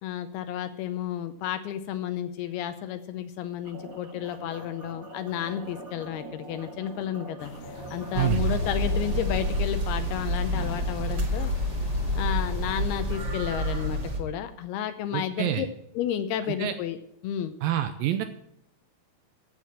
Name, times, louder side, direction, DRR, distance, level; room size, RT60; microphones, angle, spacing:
voice 1, 0.0-7.5 7.9-11.5 12.2-15.7 15.9-17.0 17.2-17.5, left 10 dB, 80° left, 9 dB, 2.6 m, -32 dB
sound 1, 3.6-9.6, right 2 dB, 50° right, 1.0 m, -43 dB
sound 2, 7.4-13.2, left 3 dB, 60° left, 2.4 m, -45 dB
sound 3, 8.1-14.2, equal, 35° right, 2.0 m, -28 dB
voice 2, 15.1-15.7 16.6-16.7 17.6-18.2, right 12 dB, 85° right, 10 dB, 2.1 m, -27 dB
13.5 x 7.7 x 7.4 m, 0.78 s
omnidirectional pair, 4.7 m